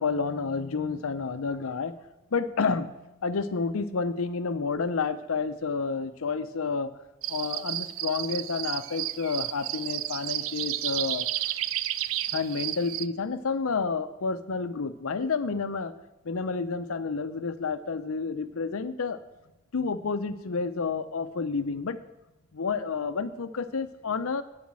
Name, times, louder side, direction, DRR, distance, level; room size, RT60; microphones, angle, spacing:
voice 1, 0.0-1.9 2.3-6.9 7.3-11.5 12.3-15.9 16.2-19.2 19.7-22.0 22.5-24.4, left 4 dB, 85° left, 12 dB, 0.6 m, -30 dB
sound 1, 7.2-13.1, right 13 dB, 70° right, 0.4 m, -32 dB
8.5 x 7.2 x 7.5 m, 0.97 s
head